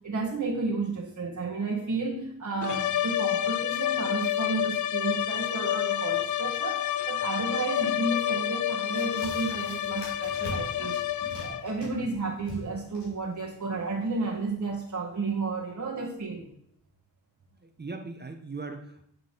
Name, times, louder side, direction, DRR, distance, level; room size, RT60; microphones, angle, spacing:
voice 1, 0.0-16.5, right 3 dB, 40° right, -2 dB, 1.5 m, -32 dB
sound 1, 2.6-11.8, left 11 dB, 40° left, 0.5 m, -29 dB
sound 2, 8.9-14.6, left 1 dB, 85° left, 2.7 m, -44 dB
voice 2, 17.5-19.0, right 3 dB, 20° right, 4 dB, 1.0 m, -40 dB
9.9 x 3.8 x 5.2 m, 0.69 s
hypercardioid pair, 40°, 47 cm